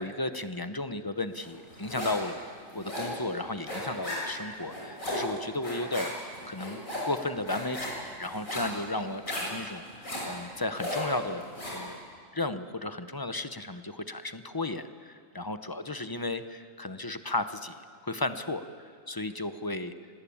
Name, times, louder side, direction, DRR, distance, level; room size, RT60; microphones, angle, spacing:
voice 1, 0.0-6.1 6.5-11.4 11.7-12.0 12.3-17.7 18.0-18.6 19.1-19.9, left 2 dB, 20° left, 11 dB, 0.8 m, -34 dB
sound 1, 1.4-2.3 2.6-11.9, left 1 dB, 85° left, 7.8 m, -36 dB
25.5 x 19.0 x 8.7 m, 2.2 s
omnidirectional pair, 1.4 m